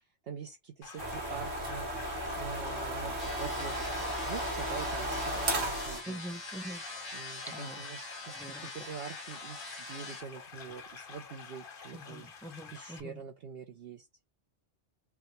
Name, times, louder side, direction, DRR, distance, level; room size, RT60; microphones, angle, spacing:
voice 1, 0.2-1.9 2.3-3.8 4.2-6.2 7.1-12.3 12.7-14.1, right 6 dB, 60° right, 0.8 m, -44 dB
sound 1, 0.8-13.0, left 6 dB, 50° left, 0.9 m, -49 dB
sound 2, 1.0-6.0, right 1 dB, 80° right, 1.8 m, -34 dB
sound 3, 3.2-10.2, left 2 dB, 90° left, 1.8 m, -44 dB
voice 2, 6.1-6.8 7.4-7.8 8.3-8.7 11.9-13.2, equal, 5° left, 0.3 m, -44 dB
5.6 x 2.2 x 3.0 m
omnidirectional pair, 1.2 m